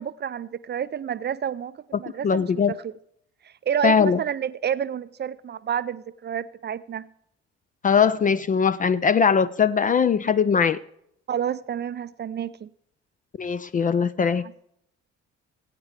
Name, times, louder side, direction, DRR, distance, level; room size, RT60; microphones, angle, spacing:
voice 1, 0.0-2.9 3.4-7.1 11.3-12.7, right 8 dB, 30° right, 0.5 m, -29 dB
voice 2, 2.2-2.7 3.8-4.2 7.8-10.8 13.4-14.4, left 6 dB, 25° left, 0.4 m, -20 dB
19.5 x 8.8 x 3.3 m
hypercardioid pair, 50°, 34 cm